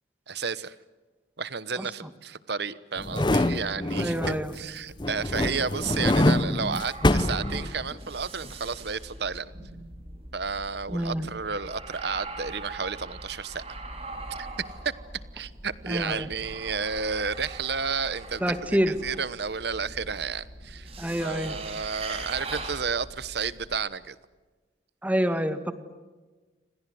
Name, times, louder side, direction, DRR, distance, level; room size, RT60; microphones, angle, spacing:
voice 1, 0.3-0.7 1.4-9.5 10.3-13.6 14.3-14.5 14.8-14.9 15.3-20.9 21.2-24.2, right 5 dB, 55° right, 17 dB, 1.0 m, -32 dB
sound 1, 3.0-4.6 5.0-8.1 8.4-8.5, left 1 dB, 25° left, 0.8 m, -25 dB
voice 2, 4.0-4.5 10.9-11.3 15.9-16.3 18.4-19.0 21.0-21.6 25.0-25.7, equal, 10° right, 10 dB, 1.8 m, -27 dB
sound 2, 4.9-23.7, right 2 dB, 30° right, 4.7 m, -42 dB
29.0 x 26.0 x 7.8 m, 1.3 s
head